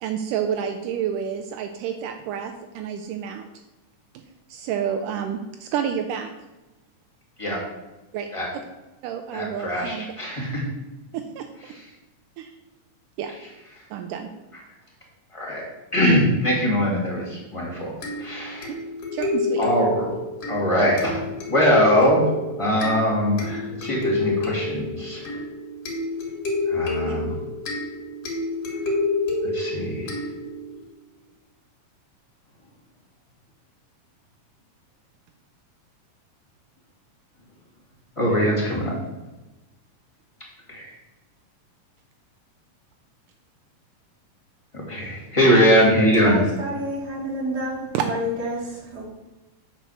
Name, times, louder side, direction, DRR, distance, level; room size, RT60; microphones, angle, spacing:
voice 1, 0.0-3.5 4.1-4.2 4.5-6.3 8.1-8.6 9.0-10.0 11.1-11.5 12.4-12.5 13.2-13.3 13.9-14.3 19.1-19.7 27.1-27.2 47.9-48.1, right 8 dB, 85° right, 5 dB, 2.1 m, -29 dB
voice 2, 9.3-10.6 15.3-15.6 15.9-17.9 18.2-18.7 19.6-20.1 20.5-21.2 21.5-22.2 22.6-25.3 26.7-27.4 29.4-30.2 38.2-38.9 40.7-40.9 44.7-46.4, equal, 10° left, -5 dB, 2.4 m, -21 dB
sound 1, 18.0-30.8, left 2 dB, 50° left, 3.0 m, -29 dB
voice 3, 46.2-49.1, equal, 35° right, -4 dB, 1.9 m, -29 dB
9.2 x 4.5 x 6.7 m, 1.1 s
omnidirectional pair, 3.8 m